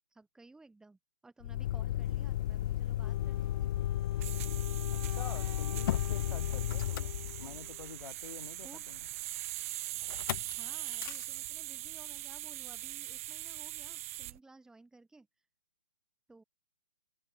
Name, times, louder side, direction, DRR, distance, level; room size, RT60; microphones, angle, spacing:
voice 1, 0.1-3.7 8.6-8.9 10.5-15.3 16.3-16.4, right 2 dB, 5° right, 5.7 m, -57 dB
Motor vehicle (road), 1.4-7.8 10.1-10.5 10.9-11.2, left 13 dB, 35° left, 1.0 m, -34 dB
sound 1, 2.0-14.4, right 16 dB, 25° right, 0.6 m, -42 dB
Wind instrument woodwind instrument, 3.0-8.1, left 9 dB, 50° left, 5.4 m, -48 dB
voice 2, 4.9-9.0, left 6 dB, 75° left, 4.1 m, -48 dB
hypercardioid pair, 155°, 18 cm